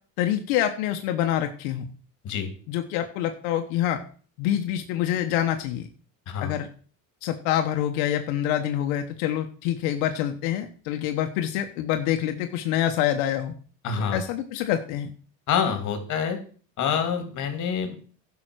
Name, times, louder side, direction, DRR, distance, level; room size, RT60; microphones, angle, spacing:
voice 1, 0.2-1.8 2.7-4.0 4.4-5.9 6.4-6.7 7.2-13.5 14.1-15.1, left 11 dB, 90° left, 6 dB, 1.3 m, -26 dB
voice 2, 13.8-14.2 15.5-16.4 16.8-17.9, left 7 dB, 50° left, 8 dB, 2.7 m, -26 dB
11.0 x 6.2 x 6.2 m, 0.42 s
cardioid pair, 135°, 39 cm